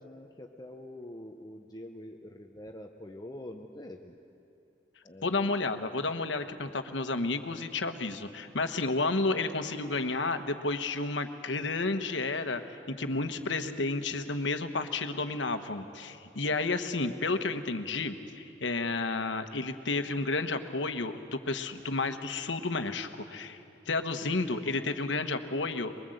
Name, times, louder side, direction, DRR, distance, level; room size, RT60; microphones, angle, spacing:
voice 1, 0.0-4.1 5.0-5.4 6.4-6.5, left 1 dB, 20° left, 3 dB, 0.8 m, -45 dB
voice 2, 5.2-25.9, left 3 dB, 90° left, 8 dB, 1.2 m, -31 dB
24.0 x 21.5 x 7.9 m, 2.7 s
head